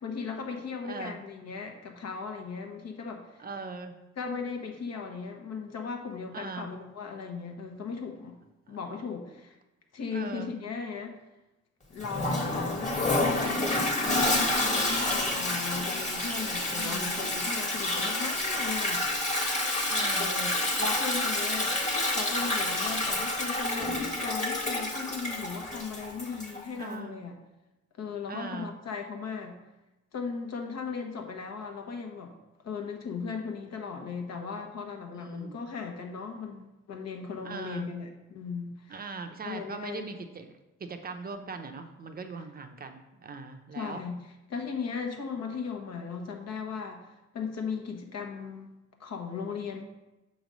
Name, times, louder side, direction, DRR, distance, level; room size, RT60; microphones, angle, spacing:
voice 1, 0.0-3.4 4.2-8.4 8.7-9.6 9.9-11.2 11.9-19.5 20.2-20.5 20.8-21.8 22.1-27.3 28.0-29.6 30.1-32.3 32.6-39.1 39.4-40.0 43.7-44.2 44.5-48.7 49.0-49.8, left 5 dB, 60° left, 3 dB, 1.1 m, -37 dB
voice 2, 0.8-1.2 3.4-3.9 6.3-6.7 8.7-8.8 10.1-10.5 16.7-17.2 19.9-20.3 26.8-27.3 28.3-28.7 35.1-35.6 37.4-37.9 38.9-40.5 40.8-44.0, right 4 dB, 30° right, 6 dB, 0.7 m, -40 dB
Toilet flush, 12.0-26.6, left 2 dB, 25° left, 1.5 m, -29 dB
6.2 x 3.1 x 5.2 m, 1.0 s
cardioid pair, 90°, 30 cm